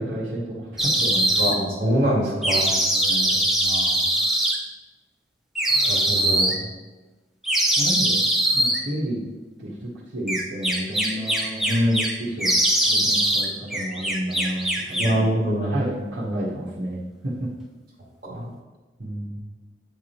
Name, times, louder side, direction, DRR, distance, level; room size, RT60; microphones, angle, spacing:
voice 1, 0.0-1.6 2.9-3.4 7.8-8.2 8.5-9.2 9.6-11.9 12.2-15.0 15.6-17.0 17.2-17.5 19.0-19.4, right 1 dB, 70° right, -8 dB, 1.4 m, -31 dB
sound 1, 0.8-1.5 2.4-4.5 5.5-6.6 7.4-8.8 10.3-12.1 12.4-13.5 13.7-15.2, right 1 dB, ahead, 0.7 m, -22 dB
voice 2, 1.3-2.8 3.6-4.1 5.7-6.7 11.7-12.1 15.0-15.9 18.2-18.5, equal, 50° right, -4 dB, 2.2 m, -24 dB
9.3 x 3.6 x 4.5 m, 1.2 s
head